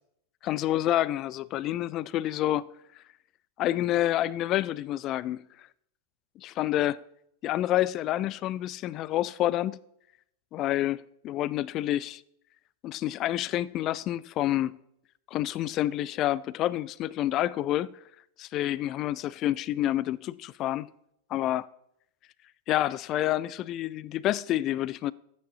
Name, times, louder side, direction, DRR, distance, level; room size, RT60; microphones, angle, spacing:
voice 1, 0.4-2.7 3.6-5.5 6.4-7.0 7.4-9.8 10.5-12.2 12.8-14.7 15.3-18.0 18.4-20.9 21.3-21.7 22.7-25.1, left 13 dB, 35° left, 0.3 m, -28 dB
12.5 x 8.5 x 4.0 m
figure-of-eight pair, 90°, 0 cm